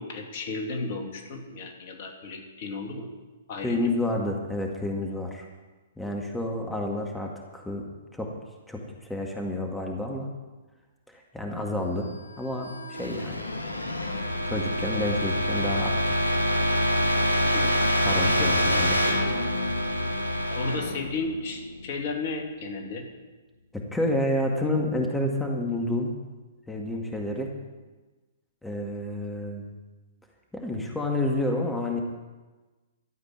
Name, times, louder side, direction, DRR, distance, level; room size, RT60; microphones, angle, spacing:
voice 1, 0.0-3.1 3.5-3.9 17.5-17.8 18.2-18.9 20.5-23.0, left 3 dB, 50° left, 3 dB, 2.6 m, -34 dB
voice 2, 3.6-5.4 6.0-7.8 8.1-8.3 8.7-10.3 11.1-12.1 12.4-13.5 14.1-16.4 18.0-19.0 23.9-26.1 26.7-27.5 28.6-29.7 30.5-32.0, left 1 dB, 5° left, 1 dB, 2.0 m, -29 dB
sound 1, 12.2-22.0, equal, 85° left, 1.7 m, -26 dB
13.5 x 8.1 x 9.4 m, 1.2 s
figure-of-eight pair, 115°, 0 cm